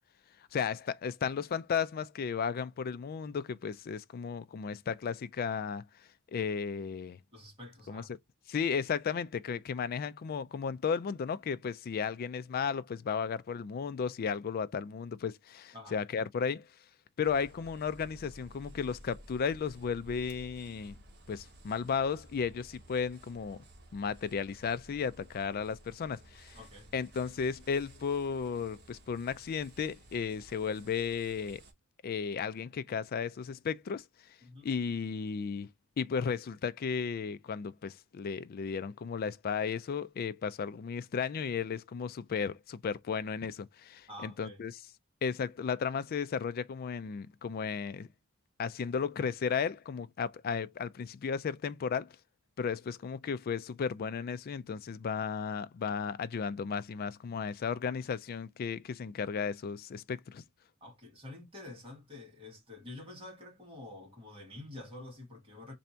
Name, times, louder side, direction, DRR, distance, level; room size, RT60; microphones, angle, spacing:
voice 1, 0.5-5.9 6.3-7.2 7.9-8.0 8.5-16.6 17.2-21.0 21.3-23.6 23.9-26.6 26.9-31.6 32.0-34.0 34.6-35.7 36.0-44.7 45.2-48.1 48.6-52.1 52.6-60.4, left 6 dB, 45° left, 0.3 m, -34 dB
voice 2, 7.3-8.1 15.7-16.0 26.5-26.9 34.4-34.7 44.1-44.6 60.8-65.8, left 2 dB, 25° right, 1.8 m, -48 dB
sound 1, 17.2-31.7, right 1 dB, 50° right, 1.2 m, -55 dB
3.4 x 2.7 x 4.3 m
head